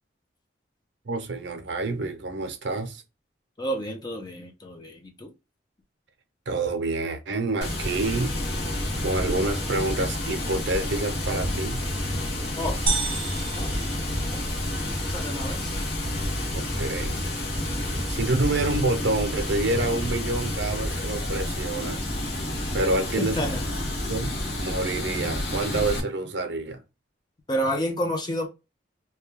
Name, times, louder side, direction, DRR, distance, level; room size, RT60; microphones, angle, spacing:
voice 1, 1.0-3.0 6.5-8.4 9.0-11.8 16.5-17.2 18.1-22.1 22.7-23.4 24.0-26.8, right 2 dB, 70° right, 0.6 m, -28 dB
voice 2, 3.6-5.3 12.6-12.8 13.5-13.7 14.0-14.4 15.0-15.8 23.2-23.7 27.5-28.5, equal, 20° left, 0.5 m, -30 dB
Water, 7.6-26.0, left 1 dB, 65° left, 0.8 m, -29 dB
sound 1, 12.9-14.8, right 3 dB, 25° right, 0.6 m, -30 dB
2.3 x 2.2 x 3.2 m
head